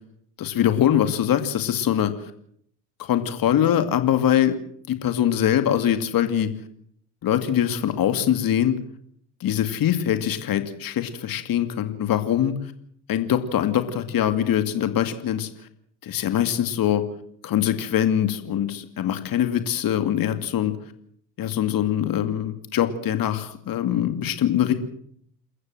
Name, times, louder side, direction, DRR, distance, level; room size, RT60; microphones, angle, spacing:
voice 1, 0.4-2.1 3.0-4.6 4.9-6.5 7.2-8.8 9.4-12.5 13.1-15.5 16.0-17.0 17.4-20.7 21.4-24.7, left 10 dB, 50° left, 9 dB, 2.6 m, -23 dB
28.5 x 14.5 x 7.7 m, 0.66 s
hypercardioid pair, 80°, 45 cm